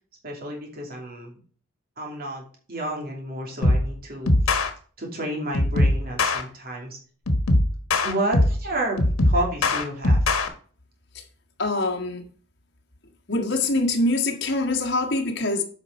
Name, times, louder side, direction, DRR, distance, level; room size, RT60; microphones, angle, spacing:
voice 1, 0.2-1.4 2.0-2.4 2.7-4.3 5.0-7.0 8.0-10.2, right 1 dB, 45° right, 2.7 m, -30 dB
sound 1, 3.6-3.9 4.3-4.7 5.5-6.4 7.3-8.6 9.0-10.5, left 1 dB, 90° left, 1.3 m, -20 dB
voice 2, 11.6-12.2 13.3-15.6, left 2 dB, 55° left, 1.6 m, -24 dB
8.6 x 5.5 x 4.4 m
head